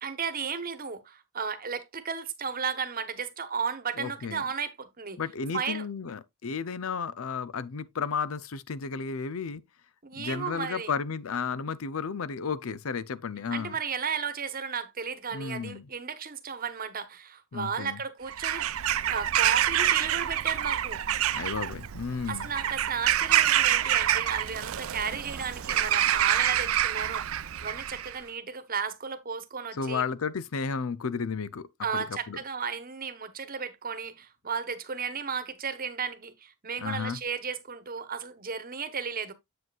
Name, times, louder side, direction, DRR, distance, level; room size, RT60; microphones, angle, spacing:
voice 1, 0.0-5.2 5.5-5.8 10.0-10.9 13.5-18.6 19.1-21.0 22.3-30.0 31.8-39.3, right 6 dB, 45° right, 1.1 m, -34 dB
voice 2, 4.0-4.4 5.2-9.6 10.2-13.7 15.3-15.9 17.5-18.0 21.3-22.5 29.7-31.7 31.9-32.4 36.8-37.2, left 5 dB, 80° left, 0.6 m, -33 dB
Bird vocalization bird call bird song / Crow, 18.3-28.2, right 11 dB, 80° right, 0.5 m, -27 dB
7.8 x 7.7 x 2.4 m
head